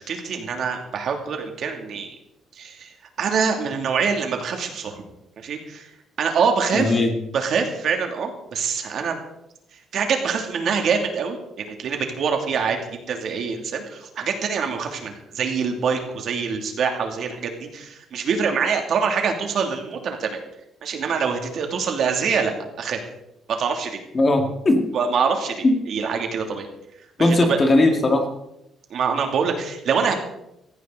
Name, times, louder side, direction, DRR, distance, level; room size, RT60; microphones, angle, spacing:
voice 1, 0.1-2.1 2.6-2.9 3.2-5.0 5.4-5.9 6.2-7.0 7.3-9.2 9.9-20.4 20.8-22.5 22.8-23.0 23.5-24.0 24.9-26.7 27.2-27.6 28.9-30.1, right 6 dB, 55° right, 4 dB, 2.7 m, -25 dB
voice 2, 6.7-7.1 24.1-24.8 25.6-25.8 27.2-28.3, left 2 dB, 25° left, 4 dB, 2.1 m, -18 dB
17.5 x 15.0 x 4.0 m, 0.83 s
cardioid pair, 145°, 0 cm